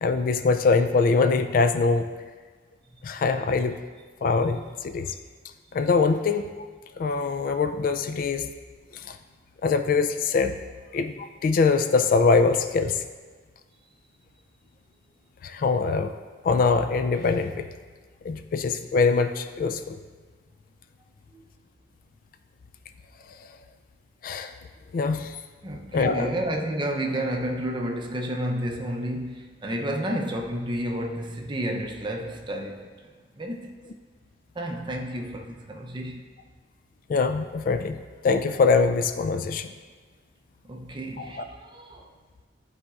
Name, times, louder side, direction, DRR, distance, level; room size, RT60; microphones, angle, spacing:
voice 1, 0.0-2.1 3.0-3.8 4.2-5.2 5.7-6.5 7.0-8.5 9.1-9.2 9.6-10.5 10.9-13.0 15.4-16.1 16.4-17.6 18.2-20.0 24.2-24.5 24.9-25.3 25.9-26.3 37.1-39.7 41.2-41.4, left 4 dB, 50° left, 9 dB, 0.3 m, -23 dB
voice 2, 25.6-33.7 34.5-36.2 40.6-42.1, right 1 dB, 25° right, 2 dB, 0.5 m, -31 dB
11.5 x 4.1 x 2.4 m, 1.4 s
head